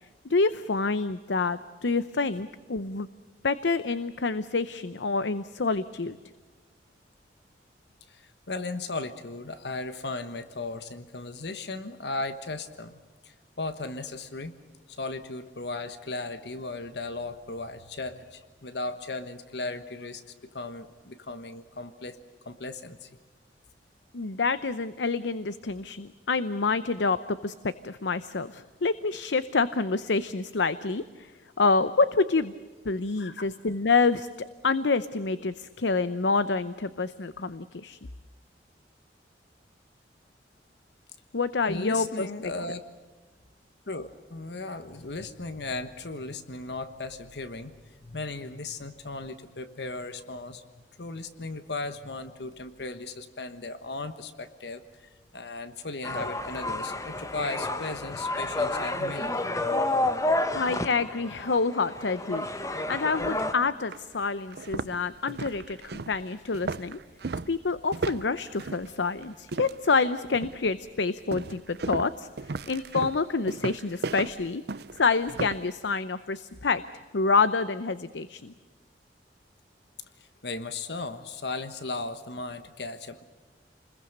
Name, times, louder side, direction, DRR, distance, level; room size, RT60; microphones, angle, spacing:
voice 1, 0.3-3.1 3.4-6.2 24.1-31.3 31.6-32.5 32.8-34.3 34.6-38.0 41.3-42.3 60.5-62.4 62.9-67.0 67.5-72.3 72.7-74.6 75.0-76.8 77.1-78.5, left 4 dB, 90° left, 14 dB, 0.7 m, -27 dB
voice 2, 8.1-13.0 13.2-14.5 14.9-20.2 20.5-22.2 22.4-23.1 33.2-33.5 41.7-42.8 43.9-47.7 48.0-50.7 51.0-59.4 80.2-83.2, left 3 dB, 70° left, 10 dB, 1.3 m, -36 dB
sound 1, 56.0-63.5, left 2 dB, 20° left, 1.2 m, -30 dB
sound 2, 63.3-63.4 63.9-64.0 64.5-70.0 70.3-70.7 71.3-75.7, right 3 dB, 65° right, 0.6 m, -35 dB
29.0 x 21.5 x 6.7 m, 1.3 s
head